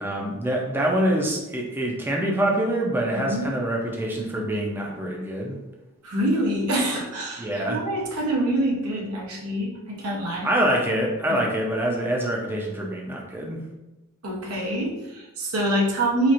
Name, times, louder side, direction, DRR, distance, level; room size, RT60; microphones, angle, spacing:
voice 1, 0.0-5.6 7.4-7.8 10.4-13.6, right 1 dB, 10° right, -1 dB, 0.5 m, -25 dB
voice 2, 6.0-10.5 11.3-11.4 14.2-16.3, right 1 dB, 85° right, -3 dB, 0.8 m, -25 dB
4.3 x 2.5 x 2.5 m, 1.0 s
head